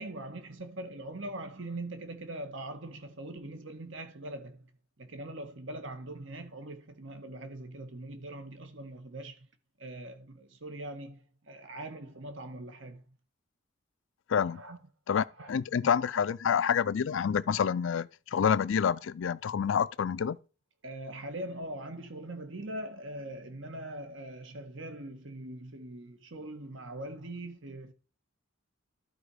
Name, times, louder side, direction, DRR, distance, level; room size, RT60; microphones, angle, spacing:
voice 1, 0.0-4.7 5.0-9.5 9.8-13.0 14.5-14.8 15.4-15.6 16.1-16.2 20.8-27.9, right 1 dB, 70° right, 1.5 m, -42 dB
voice 2, 14.3-14.6 15.1-20.4, left 7 dB, 70° left, 0.4 m, -28 dB
12.0 x 4.3 x 4.9 m
head